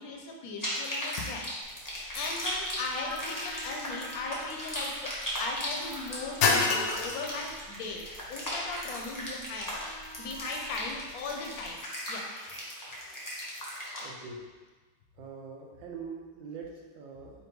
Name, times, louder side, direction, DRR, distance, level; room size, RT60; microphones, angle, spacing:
voice 1, 0.0-1.8 2.1-5.1 5.4-8.0 8.3-9.8 10.2-11.8 12.1-12.6, left 3 dB, 65° left, 1 dB, 0.9 m, -38 dB
sound 1, 0.6-14.0, equal, 25° left, 0.4 m, -37 dB
sound 2, 1.6-11.7, left 4 dB, 85° left, 1.3 m, -35 dB
Vehicle horn car horn honking, 3.0-4.6 6.1-7.6 9.7-10.9, left 1 dB, 55° right, 1.1 m, -46 dB
voice 2, 14.0-14.5 15.2-17.3, right 5 dB, 85° right, 0 dB, 1.4 m, -43 dB
4.3 x 2.8 x 4.5 m, 1.3 s
omnidirectional pair, 2.0 m